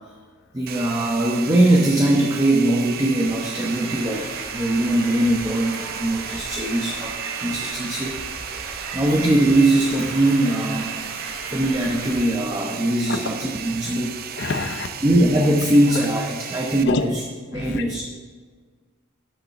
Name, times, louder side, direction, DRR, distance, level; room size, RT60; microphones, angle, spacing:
voice 1, 0.5-11.0 11.5-14.1 15.0-17.2 17.5-18.0, right 1 dB, 15° right, 0 dB, 0.8 m, -21 dB
Domestic sounds home sounds, 0.7-16.8, right 9 dB, 45° right, 0.5 m, -35 dB
sound 1, 3.0-12.3, right 3 dB, 90° right, 1.9 m, -36 dB
voice 2, 14.3-14.9 15.9-16.0 16.8-17.1 17.5-17.8, left 3 dB, 55° left, 7 dB, 0.8 m, -26 dB
9.9 x 6.7 x 5.9 m, 1.5 s
head